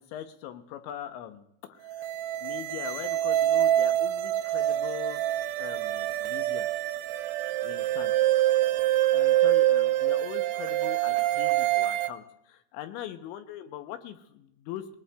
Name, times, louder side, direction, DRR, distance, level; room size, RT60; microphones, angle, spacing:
voice 1, 0.0-2.1 2.4-5.2 5.6-6.7 7.6-8.2 9.1-15.0, left 11 dB, 80° left, 8 dB, 2.9 m, -41 dB
sound 1, 1.9-12.1, right 14 dB, 90° right, 3.3 m, -25 dB
21.0 x 19.5 x 2.2 m, 0.79 s
omnidirectional pair, 5.7 m